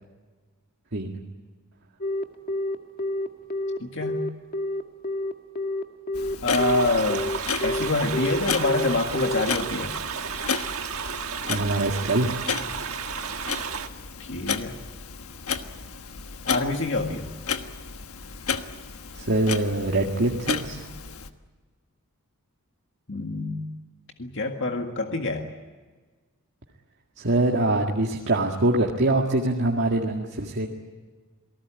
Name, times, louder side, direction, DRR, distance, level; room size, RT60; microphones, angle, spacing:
Telephone, 2.0-9.4, left 1 dB, 40° left, 1.8 m, -28 dB
voice 1, 3.8-4.2 6.4-7.3 7.6-9.9 14.2-14.8 16.4-17.3 23.1-23.7 24.2-25.5, left 2 dB, 60° left, 3 dB, 1.9 m, -26 dB
Clock, 6.1-21.3, left 6 dB, 80° left, 1.4 m, -33 dB
sound 1, 6.5-13.9, right 6 dB, 75° right, 1.5 m, -33 dB
voice 2, 11.5-12.4 19.1-20.9 27.2-30.7, right 2 dB, 55° right, 0 dB, 2.0 m, -24 dB
28.0 x 19.0 x 8.9 m, 1.4 s
head